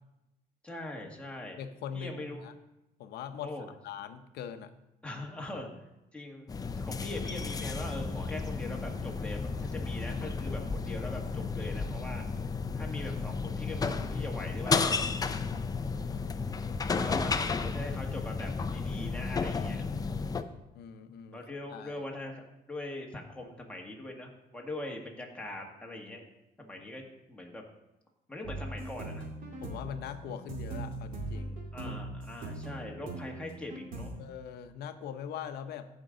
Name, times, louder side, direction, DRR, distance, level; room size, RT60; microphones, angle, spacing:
voice 1, 0.6-1.6 1.9-2.5 3.4-3.7 5.0-5.7 6.1-6.5 6.8-12.3 12.8-15.0 16.4-16.5 16.8-19.8 21.3-26.3 26.6-27.0 27.3-27.6 28.3-29.3 31.7-34.2, left 1 dB, 5° left, 0 dB, 1.7 m, -42 dB
voice 2, 1.6-2.5 3.0-3.5 3.8-4.7 15.5-16.4 20.7-21.4 21.7-22.0 29.6-31.9 34.2-35.9, left 8 dB, 75° left, 9 dB, 0.8 m, -42 dB
sound 1, 6.5-20.4, left 4 dB, 20° left, 0.5 m, -33 dB
sound 2, 28.4-34.1, right 2 dB, 55° right, 2.2 m, -40 dB
14.5 x 5.3 x 3.8 m, 0.93 s
cardioid pair, 110°, 17 cm